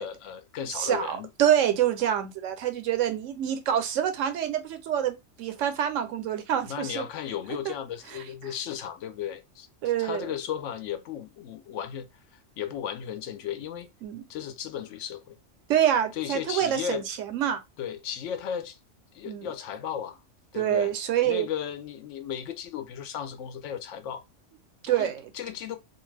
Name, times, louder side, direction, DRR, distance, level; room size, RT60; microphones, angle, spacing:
voice 1, 0.0-1.3 6.6-9.7 10.0-12.1 12.3-13.9 14.3-15.4 16.1-17.1 17.8-18.8 19.1-20.2 20.5-20.9 21.2-24.2 24.9-25.8, left 9 dB, 80° left, 0.9 m, -35 dB
voice 2, 0.7-7.1 7.7-7.8 9.8-10.3 14.0-14.3 15.7-17.6 19.3-19.5 20.6-21.5 24.8-25.2, right 10 dB, 85° right, 1.0 m, -26 dB
2.5 x 2.4 x 3.2 m
omnidirectional pair, 1.3 m